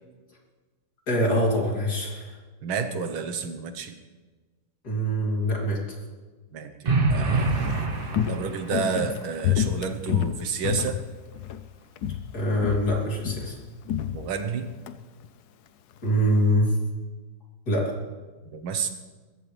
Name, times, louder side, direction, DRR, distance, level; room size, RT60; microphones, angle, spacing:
voice 1, 1.1-2.4 4.8-6.0 12.3-13.6 16.0-16.7 17.7-17.9, equal, 50° left, -2 dB, 3.6 m, -24 dB
voice 2, 2.6-3.9 6.5-7.8 8.3-11.0 14.1-14.7 18.5-18.9, right 6 dB, 85° right, 8 dB, 2.0 m, -30 dB
sound 1, 6.9-8.9, right 3 dB, 30° right, 1.3 m, -25 dB
Walk footsteps, 7.4-11.7 12.0-12.3 12.6-14.9 15.2-15.3, left 10 dB, 65° left, 1.0 m, -29 dB
21.5 x 14.5 x 3.4 m, 1.3 s
omnidirectional pair, 2.2 m